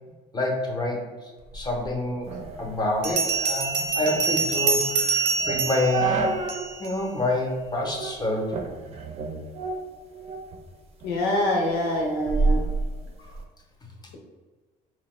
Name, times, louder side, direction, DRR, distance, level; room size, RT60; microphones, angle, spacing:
voice 1, 0.3-1.0 1.5-2.3 2.6-6.2 6.8-8.6 13.2-13.4, left 2 dB, 25° left, 1 dB, 0.6 m, -27 dB
Bell, 1.8-1.9 3.0-6.9, right 4 dB, 90° right, 0.5 m, -26 dB
sound 1, 2.3-6.7 7.1-7.2 7.8-8.2 8.5-10.6 11.0-13.4, right 3 dB, 35° right, 0.4 m, -30 dB
voice 2, 11.0-12.6, left 1 dB, 85° left, -1 dB, 0.8 m, -25 dB
2.8 x 2.1 x 3.0 m, 1.3 s
cardioid pair, 110°, 17 cm